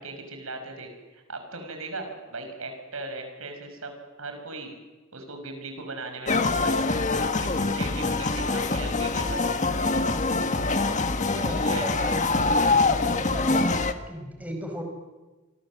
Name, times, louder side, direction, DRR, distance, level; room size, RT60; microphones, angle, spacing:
voice 1, 0.0-4.7 5.1-6.8 7.2-9.4 11.3-11.8, right 3 dB, 90° right, 6 dB, 6.1 m, -38 dB
sound 1, 6.3-13.9, left 3 dB, 35° left, 1.5 m, -24 dB
voice 2, 11.3-13.7 14.1-14.8, equal, 5° right, 3 dB, 5.2 m, -36 dB
29.5 x 24.5 x 7.6 m, 1.2 s
head